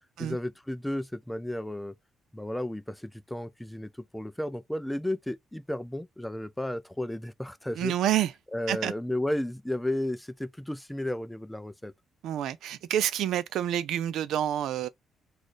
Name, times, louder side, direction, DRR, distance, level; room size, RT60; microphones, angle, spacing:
voice 1, 0.2-2.0 2.3-7.9 8.5-11.9, left 1 dB, 5° left, 0.4 m, -33 dB
voice 2, 7.8-8.3 8.7-8.9 12.2-14.9, right 11 dB, 80° right, 0.4 m, -28 dB
4.1 x 2.4 x 3.2 m
cardioid pair, 90°, 0 cm